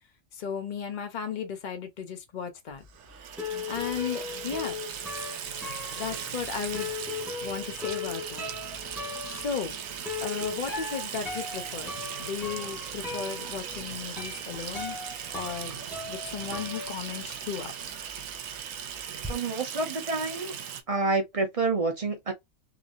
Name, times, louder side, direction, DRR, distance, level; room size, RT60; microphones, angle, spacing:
voice 1, 0.3-2.8 3.7-4.8 6.0-6.9 7.4-8.5 9.2-9.8 10.2-11.9 12.2-15.0 15.3-15.8 16.1-17.7, left 7 dB, 45° left, 0.6 m, -35 dB
sound 1, 2.8-17.6 17.9-19.3, left 4 dB, ahead, 0.9 m, -39 dB
Water tap faucet / Sink (filling or washing), 2.9-20.8, right 8 dB, 75° right, 1.0 m, -38 dB
voice 2, 19.3-20.5 20.9-22.3, right 3 dB, 35° right, 0.6 m, -28 dB
2.9 x 2.7 x 2.5 m
omnidirectional pair, 1.5 m